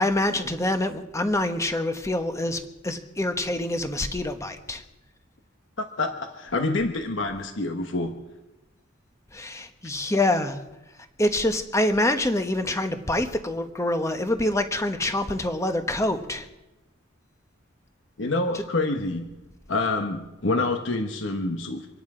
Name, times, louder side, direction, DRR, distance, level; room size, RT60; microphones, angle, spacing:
voice 1, 0.0-4.8 9.3-10.6 11.2-16.5, left 1 dB, 15° left, 7 dB, 1.1 m, -26 dB
voice 2, 5.8-8.1 18.2-19.3 19.7-21.9, left 2 dB, 65° left, 5 dB, 1.2 m, -27 dB
25.0 x 10.0 x 5.0 m, 1.0 s
head